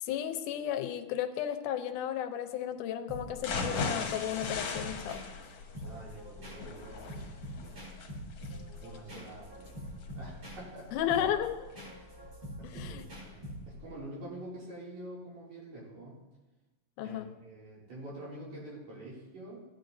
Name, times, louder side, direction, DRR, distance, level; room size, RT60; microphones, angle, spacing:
voice 1, 0.0-5.2 10.9-11.6 12.6-13.1 17.0-17.3, left 10 dB, 85° left, 8 dB, 2.2 m, -33 dB
sound 1, 3.1-14.0, equal, 45° right, 5.3 m, -45 dB
sound 2, 3.4-11.3 11.7-11.8 12.2-12.3, left 4 dB, 60° left, 1.8 m, -38 dB
voice 2, 5.8-7.3 8.8-9.7 10.1-11.0 12.6-13.0 13.2-16.2 17.0-19.6, right 1 dB, 65° right, -6 dB, 3.8 m, -46 dB
15.5 x 10.0 x 2.6 m, 1.1 s
omnidirectional pair, 3.6 m